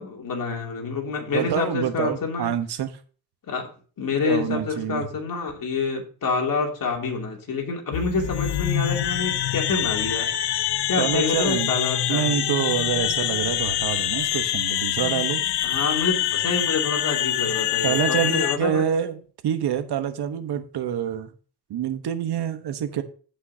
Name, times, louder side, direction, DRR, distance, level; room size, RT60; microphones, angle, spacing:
voice 1, 0.0-2.5 3.5-3.7 4.0-10.3 10.9-12.4 15.6-18.8, left 4 dB, 55° left, 2.9 m, -27 dB
voice 2, 1.3-2.9 4.2-5.1 11.0-11.7 12.1-15.4 17.8-21.3 21.7-23.0, right 9 dB, 75° right, 1.2 m, -26 dB
sound 1, 7.9-18.6, left 12 dB, 85° left, 0.7 m, -25 dB
16.5 x 5.6 x 2.8 m
cardioid pair, 115°, 39 cm